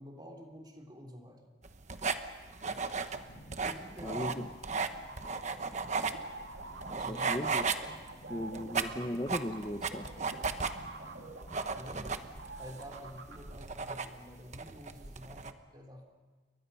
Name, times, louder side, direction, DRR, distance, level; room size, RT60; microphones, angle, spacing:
voice 1, 0.0-1.5 2.7-2.9 3.6-4.5 7.0-8.0 11.7-12.2 12.6-16.2, equal, 25° right, 1 dB, 3.3 m, -49 dB
sound 1, 1.6-15.5, right 4 dB, 40° right, 1.1 m, -36 dB
Thunderstorm / Rain, 2.7-14.9, equal, 50° left, 5.4 m, -58 dB
voice 2, 4.0-4.5 6.9-7.7 8.3-10.0, left 1 dB, 25° left, 5 dB, 0.9 m, -37 dB
sound 2, 5.1-12.1 12.4-13.4, right 3 dB, 75° right, 2.4 m, -47 dB
29.5 x 23.5 x 5.6 m, 1.3 s
head